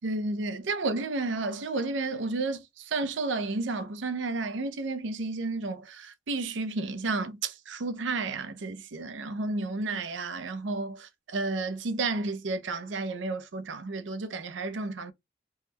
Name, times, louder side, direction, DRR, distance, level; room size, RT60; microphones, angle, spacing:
voice 1, 0.0-15.1, right 3 dB, 85° right, 0.5 m, -32 dB
3.5 x 2.1 x 2.9 m
head